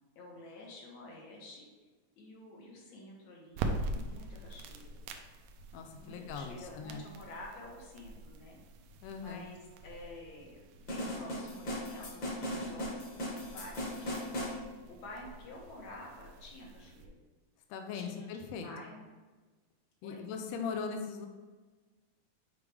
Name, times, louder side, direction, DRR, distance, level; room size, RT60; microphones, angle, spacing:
voice 1, 0.2-1.7 2.2-5.0 6.0-8.6 9.1-9.6 9.8-13.0 13.3-17.1 17.9-19.1 20.0-20.2, left 2 dB, 65° left, -2 dB, 2.3 m, -50 dB
sound 1, 3.5-17.1, right 2 dB, 90° right, 2.2 m, -44 dB
voice 2, 5.7-7.0 9.0-9.5 17.7-18.7 20.0-21.3, left 5 dB, 85° left, 4 dB, 1.5 m, -40 dB
sound 2, 10.9-14.6, equal, 45° left, 1.6 m, -38 dB
6.9 x 4.8 x 3.4 m, 1.3 s
omnidirectional pair, 3.7 m